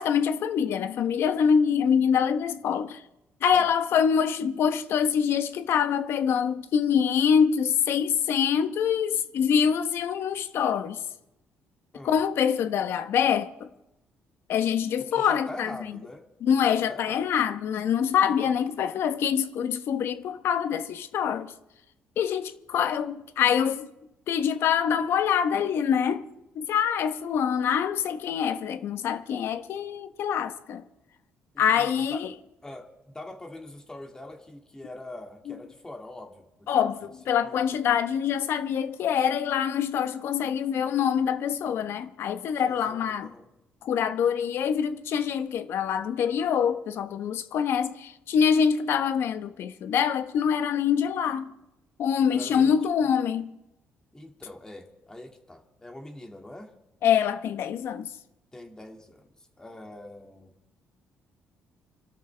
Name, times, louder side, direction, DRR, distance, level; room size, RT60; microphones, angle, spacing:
voice 1, 0.0-3.0 3.4-11.0 12.0-13.7 14.5-15.8 16.4-21.5 22.2-23.9 24.3-26.3 26.5-30.8 31.6-32.3 35.5-35.6 36.7-43.3 43.8-51.5 52.0-53.5 57.0-58.1, left 7 dB, 65° left, 1.0 m, -25 dB
voice 2, 15.1-16.2 16.6-17.3 31.5-32.2 32.6-37.1 37.4-37.6 42.5-43.5 52.2-52.8 54.1-56.7 58.5-60.5, left 1 dB, 15° left, 2.2 m, -43 dB
26.5 x 13.0 x 3.4 m
cardioid pair, 105°, 4 cm